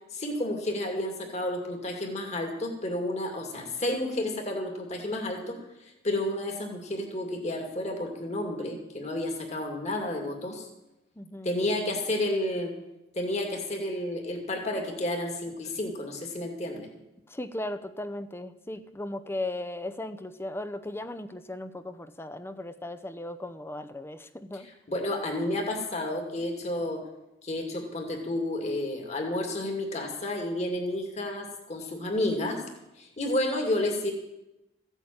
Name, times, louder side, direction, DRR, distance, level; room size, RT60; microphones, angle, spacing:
voice 1, 0.1-5.6 6.0-10.7 11.4-12.7 13.1-16.9 24.5-24.6 24.9-27.0 27.4-32.6 33.0-34.1, left 1 dB, 35° left, 2 dB, 2.5 m, -31 dB
voice 2, 11.2-11.5 17.3-24.7, left 1 dB, 15° left, 10 dB, 0.7 m, -37 dB
15.0 x 8.1 x 8.8 m, 0.92 s
head